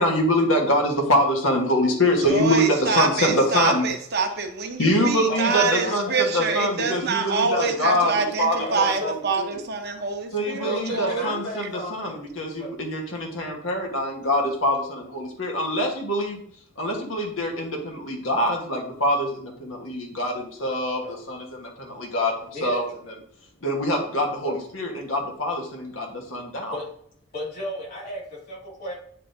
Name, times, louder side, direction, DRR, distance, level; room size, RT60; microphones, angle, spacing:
voice 1, 0.0-3.9 4.8-9.6 10.3-16.4 16.8-22.8 23.6-26.8, equal, 90° left, 1 dB, 1.4 m, -24 dB
voice 2, 2.3-11.4, right 4 dB, 55° right, 4 dB, 0.9 m, -26 dB
voice 3, 5.3-6.7 8.6-9.1 10.6-12.2 12.6-12.7 21.0-21.1 22.5-22.8 24.4-24.5 26.7-26.9 27.3-28.9, left 1 dB, 50° left, -4 dB, 2.6 m, -34 dB
9.2 x 3.8 x 2.7 m, 0.64 s
head